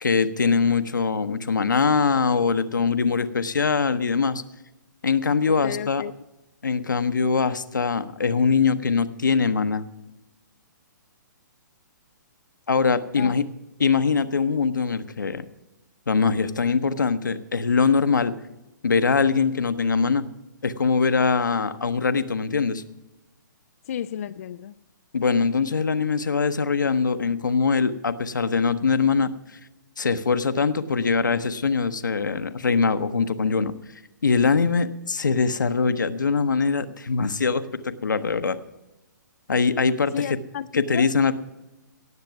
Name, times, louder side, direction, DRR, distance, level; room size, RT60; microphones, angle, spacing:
voice 1, 0.0-4.4 5.0-6.0 6.6-9.8 12.7-13.4 13.8-15.5 16.1-18.3 18.8-20.2 20.6-22.8 25.1-29.3 30.0-33.8 34.2-38.6 39.5-40.1 40.7-41.3, left 5 dB, 75° left, 11 dB, 0.9 m, -22 dB
voice 2, 5.6-6.1 13.1-13.3 23.8-24.8 40.1-41.1, left 9 dB, 50° left, 11 dB, 0.4 m, -32 dB
17.5 x 7.7 x 5.9 m, 0.98 s
figure-of-eight pair, 125°, 10 cm